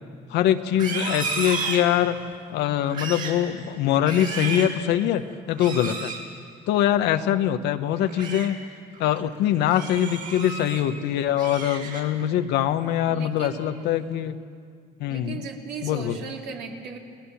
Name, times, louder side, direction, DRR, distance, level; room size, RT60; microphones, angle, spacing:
voice 1, 0.3-2.2 2.5-6.1 6.7-8.6 9.0-14.4 15.0-15.5 15.8-16.2, left 11 dB, 85° left, 9 dB, 1.0 m, -23 dB
Livestock farm animals working animals, 0.7-2.3 2.8-3.4 3.9-4.8 5.5-6.2 7.9-8.5 8.9-9.2 9.7-10.8 11.2-12.2 12.6-13.0 13.4-13.8, right 4 dB, 55° right, 5.4 m, -33 dB
voice 2, 13.1-13.6 15.1-17.0, right 4 dB, 80° right, 0 dB, 3.1 m, -36 dB
30.0 x 18.5 x 7.1 m, 2.1 s
cardioid pair, 110°, 17 cm